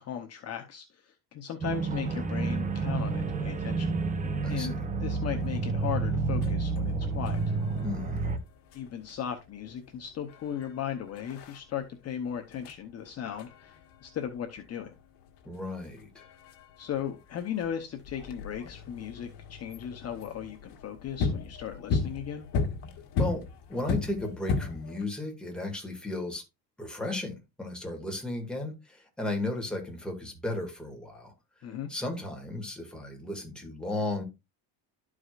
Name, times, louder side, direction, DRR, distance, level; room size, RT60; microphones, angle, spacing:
voice 1, 0.0-3.9 4.5-4.7 5.0-7.6 8.7-14.9 16.8-22.5 31.6-31.9, left 9 dB, 35° left, 0.8 m, -37 dB
sound 1, 1.6-8.4, right 3 dB, 20° right, 0.6 m, -30 dB
voice 2, 4.4-4.8 7.8-8.3 15.5-16.3 23.2-23.4 23.7-26.4 26.8-31.3 31.9-34.2, left 2 dB, ahead, 2.0 m, -35 dB
sound 2, 5.2-25.0, left 4 dB, 70° left, 1.5 m, -37 dB
12.5 x 4.9 x 2.4 m
cardioid pair, 140°, 42 cm